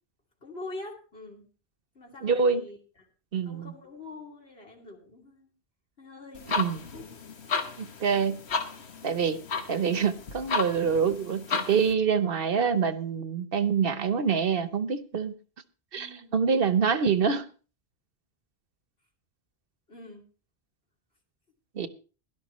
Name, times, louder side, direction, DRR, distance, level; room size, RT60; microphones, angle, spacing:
voice 1, 0.4-1.5 1.9-3.1 3.4-5.5 6.0-6.6 16.0-16.4 19.9-20.3, left 2 dB, 70° left, 3.0 m, -44 dB
voice 2, 2.2-2.6 3.3-3.7 6.6-6.8 7.8-8.4 9.0-9.4 9.7-15.3 15.9-17.5 21.8-21.9, right 6 dB, 65° right, 1.1 m, -26 dB
sound 1, 6.3-11.9, left 5 dB, 85° left, 1.5 m, -33 dB
17.5 x 12.0 x 3.1 m
omnidirectional pair, 1.1 m